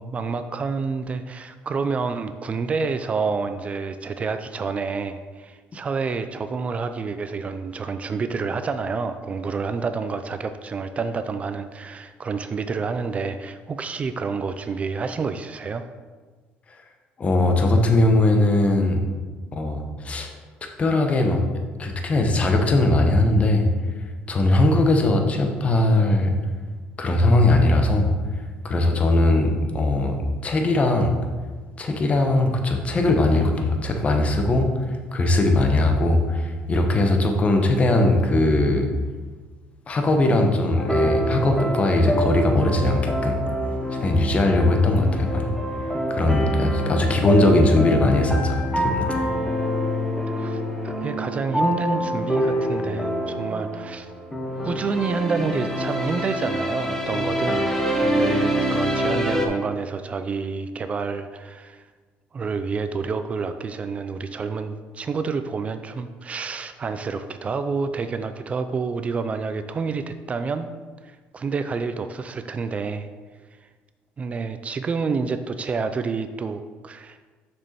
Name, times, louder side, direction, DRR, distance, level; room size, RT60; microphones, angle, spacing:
voice 1, 0.0-15.9 50.3-54.1 54.6-57.7 58.0-61.9 62.3-70.7 71.0-73.1 74.2-77.3, right 4 dB, 30° right, 9 dB, 0.4 m, -28 dB
voice 2, 17.2-19.0 19.5-20.3 20.6-21.4 21.8-23.7 24.3-26.3 27.0-28.1 28.6-30.2 30.4-31.1 31.8-34.7 35.1-38.9 39.9-43.4 44.0-45.5 46.1-49.1, left 2 dB, 30° left, 4 dB, 1.0 m, -20 dB
sound 1, 40.8-59.5, equal, 10° left, 1.1 m, -26 dB
6.2 x 6.2 x 4.3 m, 1.4 s
cardioid pair, 105°, 4 cm